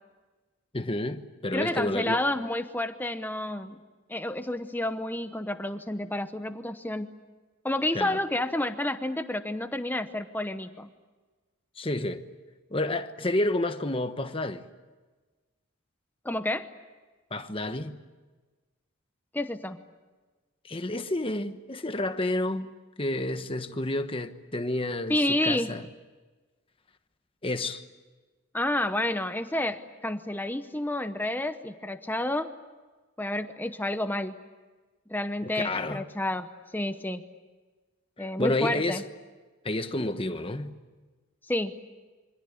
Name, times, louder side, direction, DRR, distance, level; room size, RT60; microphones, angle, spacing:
voice 1, 0.7-2.2 7.9-8.2 11.8-12.2 12.7-14.6 17.3-18.0 20.6-22.7 23.0-25.9 27.4-27.8 35.4-36.1 38.2-39.0 39.6-40.8, left 1 dB, 25° left, 1.2 m, -30 dB
voice 2, 1.5-3.8 4.1-7.1 7.6-10.9 16.2-16.7 19.3-19.8 25.1-25.8 28.5-32.5 33.2-34.4 35.1-37.2 38.2-39.0 41.5-41.8, left 1 dB, 10° left, 0.9 m, -30 dB
27.5 x 25.0 x 8.5 m
head